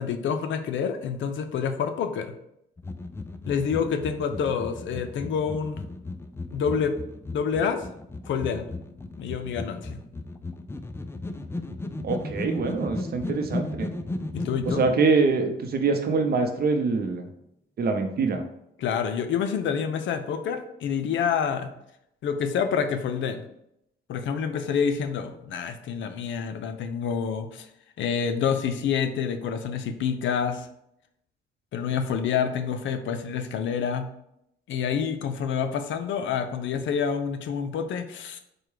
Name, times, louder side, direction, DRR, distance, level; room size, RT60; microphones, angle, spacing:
voice 1, 0.0-2.3 3.5-5.8 6.5-7.0 7.3-7.8 8.3-8.7 9.2-10.0 14.3-14.8 18.8-21.7 22.2-23.5 24.1-27.7 28.0-30.7 31.7-34.1 34.7-38.4, left 7 dB, 70° left, 8 dB, 0.5 m, -27 dB
sound 1, 2.8-14.9, left 2 dB, 10° left, 0.3 m, -35 dB
voice 2, 12.0-13.9 14.7-17.2 17.8-18.4, right 4 dB, 50° right, 5 dB, 0.7 m, -24 dB
4.7 x 2.2 x 4.8 m, 0.79 s
cardioid pair, 90°, 20 cm